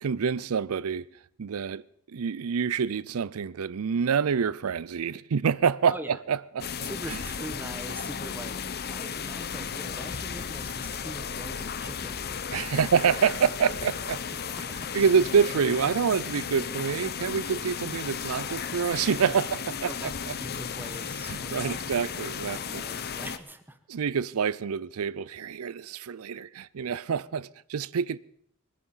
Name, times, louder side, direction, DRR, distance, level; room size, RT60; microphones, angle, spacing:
voice 1, 0.0-1.1 1.4-6.7 12.5-14.2 14.9-20.1 21.3-22.8 23.9-28.2, right 6 dB, 85° right, 0.5 m, -27 dB
sound 1, 6.6-23.4, left 6 dB, 50° left, 0.7 m, -35 dB
voice 2, 6.8-12.9 14.4-15.2 19.2-19.4 19.8-21.8 22.4-23.8, right 1 dB, 10° right, 1.2 m, -43 dB
21.5 x 10.0 x 5.6 m
head